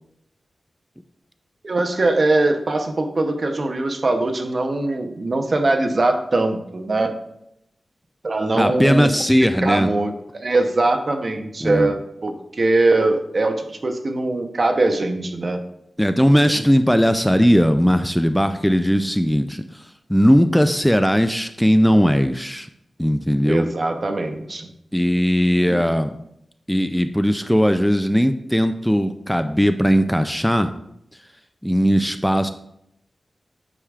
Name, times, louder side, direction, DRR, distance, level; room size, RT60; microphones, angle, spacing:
voice 1, 1.6-7.1 8.2-9.1 9.6-12.0 12.2-15.6 16.4-16.6 23.4-24.7 25.7-25.8, right 2 dB, 50° right, 6 dB, 0.7 m, -21 dB
voice 2, 8.5-9.9 11.6-11.9 16.0-22.7 23.0-23.6 24.9-26.1 26.7-30.7 31.6-32.5, equal, 5° left, 9 dB, 0.3 m, -18 dB
8.6 x 4.7 x 2.4 m, 0.79 s
cardioid pair, 55°, 0 cm